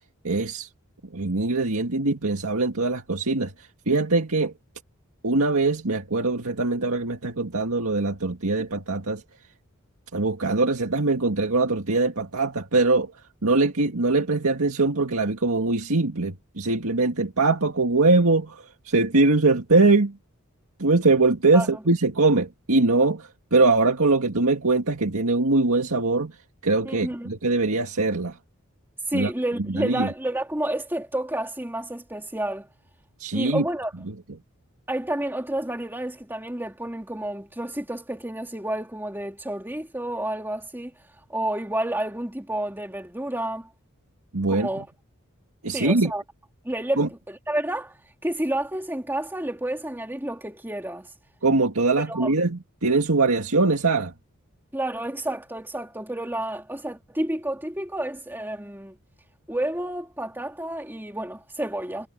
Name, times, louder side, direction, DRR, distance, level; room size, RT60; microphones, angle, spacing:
voice 1, 0.2-0.7 1.1-4.5 5.2-9.2 10.1-13.1 13.4-20.2 20.8-26.4 26.6-28.4 29.1-29.3 29.7-30.1 33.2-33.6 44.3-44.7 45.6-46.1 47.0-47.1 51.4-54.1, right 3 dB, 85° right, 2.0 m, -22 dB
voice 2, 26.8-27.3 29.1-32.7 33.3-33.9 34.9-40.9 41.3-43.7 44.5-44.9 45.7-46.2 46.6-51.1 52.1-52.3 54.7-59.0 59.5-62.1, right 1 dB, 10° right, 2.6 m, -30 dB
head